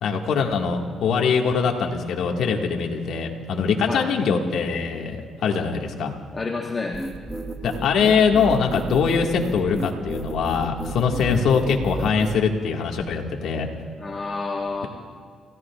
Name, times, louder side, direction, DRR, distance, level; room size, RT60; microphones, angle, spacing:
voice 1, 0.0-6.1 7.6-13.7, left 5 dB, 75° left, 1 dB, 1.7 m, -22 dB
voice 2, 6.3-7.0 11.2-11.5 14.0-14.9, left 3 dB, 30° left, 0 dB, 1.3 m, -29 dB
sound 1, 6.9-12.4, right 2 dB, 10° right, 1.4 m, -32 dB
30.0 x 15.5 x 2.4 m, 2.1 s
cardioid pair, 90°, 0 cm